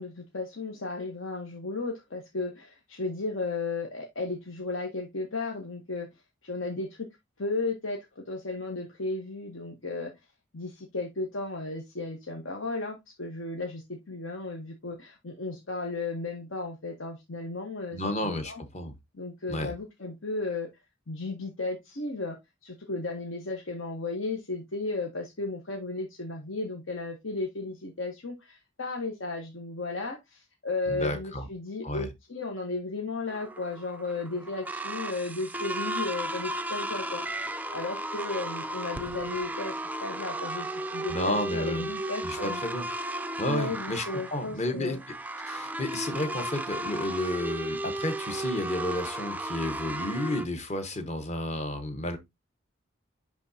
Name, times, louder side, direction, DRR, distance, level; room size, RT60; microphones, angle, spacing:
voice 1, 0.0-6.1 6.4-7.1 7.4-10.1 10.5-18.6 19.1-20.7 21.1-42.6 43.5-45.0, left 3 dB, 70° left, 1.2 m, -34 dB
voice 2, 17.9-18.9 19.5-19.7 30.9-31.5 31.8-32.1 41.1-41.8 42.2-42.9 43.4-45.0 45.4-52.2, left 1 dB, 35° left, 1.1 m, -32 dB
sound 1, 33.3-50.5, right 1 dB, 10° right, 0.3 m, -35 dB
10.5 x 3.6 x 2.7 m
head